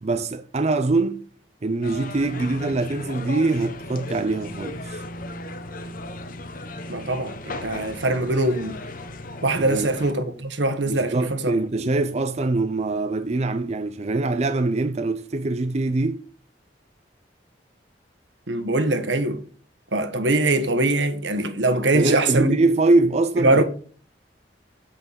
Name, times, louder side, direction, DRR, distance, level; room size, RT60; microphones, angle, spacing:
voice 1, 0.0-1.2 1.6-5.0 9.6-9.9 10.9-16.2 21.9-23.6, right 2 dB, 35° right, 0.5 m, -23 dB
sound 1, 1.8-10.1, left 2 dB, 50° left, 1.0 m, -36 dB
voice 2, 6.9-8.8 9.4-11.8 18.5-19.4 19.9-22.6 23.4-23.6, right 2 dB, 80° right, 1.5 m, -22 dB
8.2 x 5.9 x 6.9 m
head